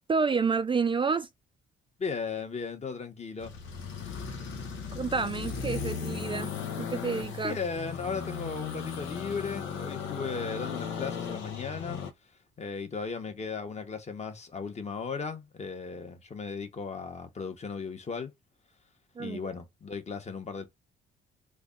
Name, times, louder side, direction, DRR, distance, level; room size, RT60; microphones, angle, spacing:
voice 1, 0.1-1.3 4.9-6.5 6.8-7.6 19.2-19.5, right 5 dB, 25° right, 0.3 m, -29 dB
voice 2, 2.0-3.5 7.4-12.0 12.6-18.3 19.2-20.7, left 5 dB, 35° left, 1.0 m, -36 dB
sound 1, 3.4-12.1, left 6 dB, 85° left, 0.8 m, -36 dB
3.3 x 2.2 x 3.7 m
cardioid pair, 90°, 20 cm